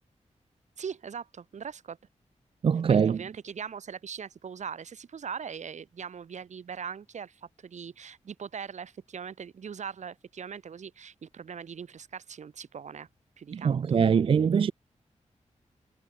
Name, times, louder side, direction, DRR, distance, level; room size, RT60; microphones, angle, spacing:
voice 1, 0.8-2.0 2.9-13.1 13.4-14.0, right 7 dB, 70° right, 1.9 m, -40 dB
voice 2, 2.6-3.2 13.5-14.7, right 7 dB, 45° right, 0.4 m, -23 dB
wide cardioid pair, 160°, 13 cm